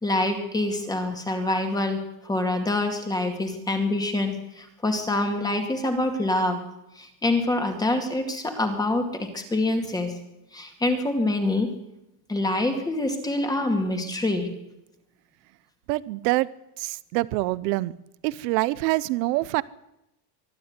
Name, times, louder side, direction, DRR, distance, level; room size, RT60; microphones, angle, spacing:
voice 1, 0.0-6.6 7.0-10.1 10.5-11.7 12.3-14.5, left 2 dB, 10° left, 4 dB, 2.3 m, -26 dB
voice 2, 15.9-16.5 16.8-17.9 18.2-19.6, right 19 dB, 90° right, 19 dB, 1.0 m, -25 dB
24.0 x 12.5 x 9.8 m, 0.88 s
cardioid pair, 180°, 48 cm